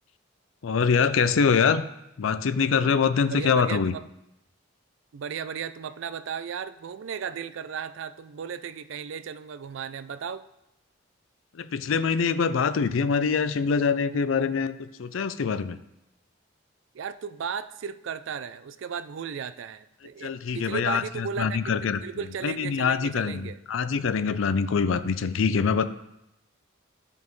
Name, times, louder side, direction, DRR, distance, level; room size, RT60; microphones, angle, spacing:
voice 1, 0.6-1.8 2.2-3.9 11.5-15.8 20.2-22.0 22.4-25.9, left 5 dB, 75° left, 13 dB, 0.4 m, -24 dB
voice 2, 3.2-4.0 5.1-10.4 16.9-23.6, right 7 dB, 70° right, 13 dB, 0.4 m, -35 dB
12.5 x 5.2 x 3.1 m, 0.87 s
head